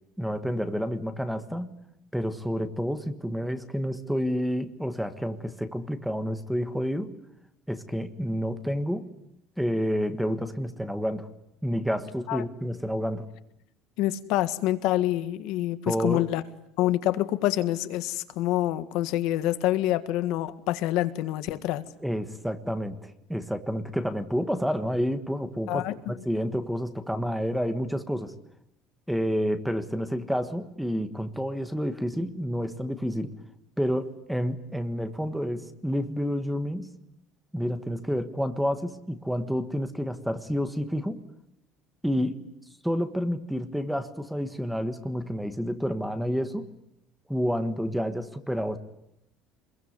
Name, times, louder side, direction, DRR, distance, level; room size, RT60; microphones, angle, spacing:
voice 1, 0.2-1.7 2.1-7.1 7.7-9.1 9.6-11.3 11.6-13.2 15.9-16.3 22.0-28.3 29.1-33.3 33.8-36.9 37.5-41.2 42.0-42.5 42.8-46.7 47.3-48.8, equal, ahead, 10 dB, 1.4 m, -29 dB
voice 2, 14.0-16.4 16.8-21.8 25.7-26.1, left 14 dB, 65° left, 11 dB, 1.7 m, -26 dB
26.5 x 22.0 x 9.5 m, 0.80 s
cardioid pair, 175°, 0 cm